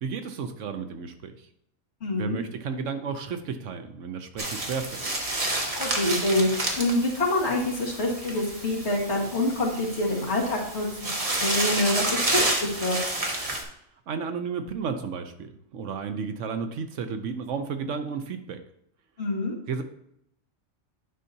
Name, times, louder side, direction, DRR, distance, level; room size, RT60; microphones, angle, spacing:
voice 1, 0.0-1.4 2.1-5.0 14.1-18.6 19.7-19.8, right 5 dB, 70° right, 8 dB, 1.0 m, -32 dB
voice 2, 2.0-2.4 5.8-13.0 19.2-19.6, left 1 dB, 55° left, -3 dB, 2.0 m, -26 dB
sound 1, 4.4-13.6, right 1 dB, 30° right, 1.2 m, -30 dB
9.9 x 5.5 x 2.7 m, 0.75 s
omnidirectional pair, 1.4 m